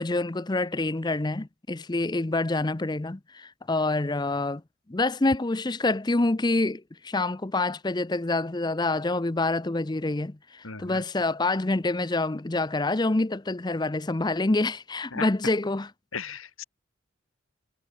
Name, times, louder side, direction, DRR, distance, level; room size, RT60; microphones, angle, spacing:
voice 1, 0.0-4.6 4.9-15.9, left 2 dB, 20° left, 0.6 m, -27 dB
voice 2, 10.6-11.0 15.1-15.3 16.1-16.6, left 5 dB, 75° left, 3.3 m, -36 dB
head